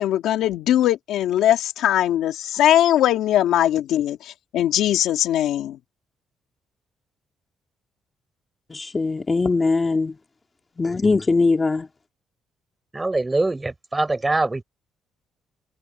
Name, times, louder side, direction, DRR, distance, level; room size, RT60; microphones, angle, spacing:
voice 1, 0.0-5.8, left 12 dB, 85° left, 2.2 m, -20 dB
voice 2, 8.7-10.2 10.8-11.9, left 3 dB, 25° left, 2.5 m, -21 dB
voice 3, 12.9-14.6, right 2 dB, 20° right, 5.4 m, -23 dB
cardioid pair, 90°, 0 cm